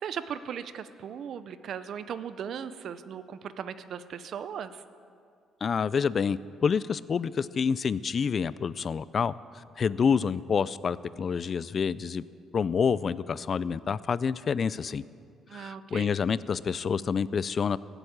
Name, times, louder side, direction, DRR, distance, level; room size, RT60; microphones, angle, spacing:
voice 1, 0.0-4.7 15.5-16.1, right 8 dB, 55° right, 12 dB, 0.6 m, -37 dB
voice 2, 5.6-12.2 12.5-15.0 15.5-17.8, left 6 dB, 35° left, 18 dB, 0.3 m, -28 dB
17.0 x 8.0 x 8.7 m, 2.4 s
cardioid pair, 145°, 0 cm